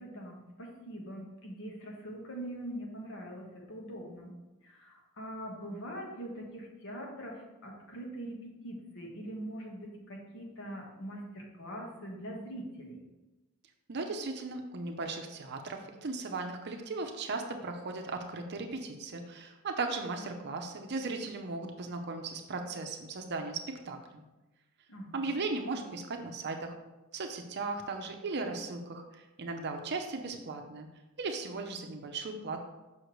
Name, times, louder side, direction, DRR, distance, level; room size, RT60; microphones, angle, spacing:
voice 1, 0.0-4.3 4.6-13.0 24.9-25.2, right 1 dB, 60° left, 0 dB, 1.3 m, -43 dB
voice 2, 13.9-24.2 25.1-26.7 27.1-30.9 31.2-32.6, right 3 dB, 50° right, 4 dB, 0.6 m, -37 dB
6.5 x 5.6 x 3.1 m, 1.1 s
head